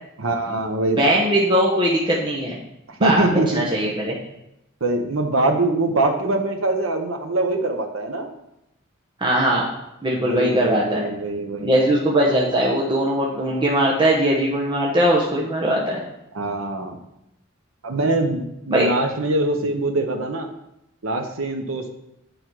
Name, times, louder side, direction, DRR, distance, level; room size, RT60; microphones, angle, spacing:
voice 1, 0.2-1.2 2.9-3.6 4.8-8.3 10.1-11.7 16.3-17.0 17.8-20.5 21.0-21.9, right 2 dB, 75° right, 4 dB, 0.9 m, -23 dB
voice 2, 0.9-2.6 3.0-3.2 3.5-4.2 9.2-9.7 10.0-11.1 11.6-16.0 18.7-18.9, right 1 dB, 25° right, -4 dB, 1.0 m, -20 dB
8.0 x 5.1 x 4.7 m, 0.84 s
head